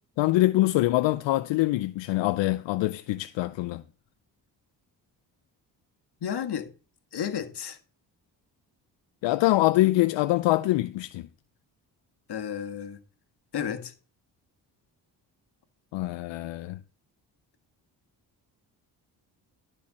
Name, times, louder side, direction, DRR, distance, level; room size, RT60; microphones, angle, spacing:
voice 1, 0.2-3.8 9.2-11.3 15.9-16.8, left 17 dB, 90° left, 0.6 m, -24 dB
voice 2, 6.2-6.7 7.1-7.8 12.3-13.0 13.5-13.9, left 8 dB, 65° left, 1.8 m, -32 dB
12.5 x 4.5 x 7.4 m
cardioid pair, 60°, 43 cm